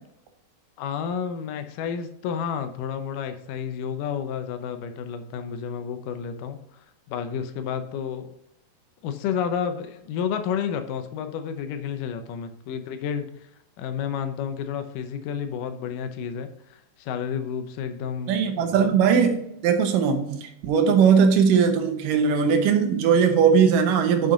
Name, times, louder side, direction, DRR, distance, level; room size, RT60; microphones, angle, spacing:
voice 1, 0.8-8.4 9.0-13.5 13.8-18.9, left 7 dB, 75° left, 8 dB, 2.0 m, -31 dB
voice 2, 18.3-24.3, right 6 dB, 70° right, 5 dB, 2.3 m, -19 dB
6.9 x 6.1 x 3.8 m, 0.80 s
omnidirectional pair, 4.5 m